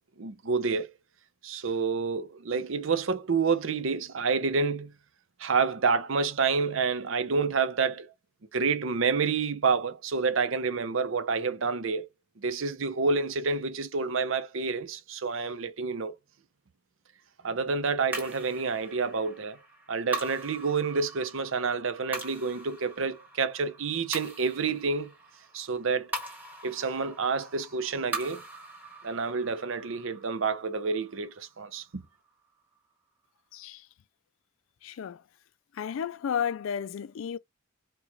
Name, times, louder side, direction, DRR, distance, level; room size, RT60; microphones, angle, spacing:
voice 1, 0.2-0.9 1.4-4.9 5.4-8.1 8.5-12.1 12.4-16.2 17.4-19.6 19.9-25.1 25.5-26.1 26.6-28.4 29.0-32.0, right 4 dB, 75° right, 0.6 m, -28 dB
sound 1, 18.1-32.6, right 2 dB, 10° right, 1.3 m, -42 dB
voice 2, 33.5-33.9 34.8-35.2 35.7-37.4, left 8 dB, 75° left, 0.3 m, -33 dB
4.5 x 2.3 x 3.9 m
head